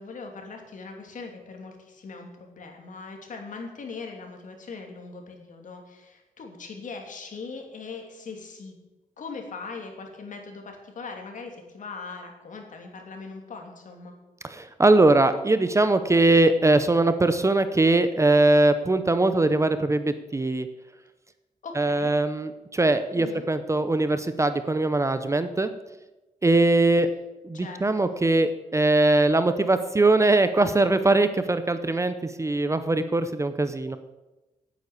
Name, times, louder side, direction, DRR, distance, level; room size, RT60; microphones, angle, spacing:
voice 1, 0.0-8.7 9.2-14.1 21.6-22.1 23.1-23.5 27.5-28.1, left 4 dB, 60° left, 3 dB, 2.8 m, -40 dB
voice 2, 14.4-20.7 21.8-25.7 26.4-27.1 27.4-34.0, right 2 dB, 20° right, 11 dB, 0.7 m, -21 dB
9.5 x 9.3 x 8.5 m, 1.1 s
cardioid pair, 110°, 15 cm